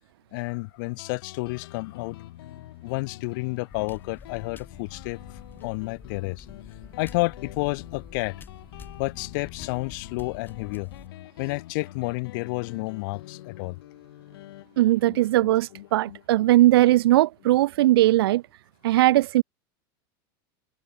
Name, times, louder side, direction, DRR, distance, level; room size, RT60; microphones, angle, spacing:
voice 1, 0.3-2.2 2.8-6.5 7.0-8.4 9.0-10.9 11.4-13.8, left 27 dB, 65° left, 1.8 m, -30 dB
Guitar, 1.0-18.2, left 16 dB, 80° left, 4.0 m, -45 dB
sound 1, 3.7-11.1, left 5 dB, 15° left, 2.8 m, -47 dB
voice 2, 14.8-18.4 18.8-19.4, right 15 dB, 90° right, 0.5 m, -19 dB
supercardioid pair, 140°, 12 cm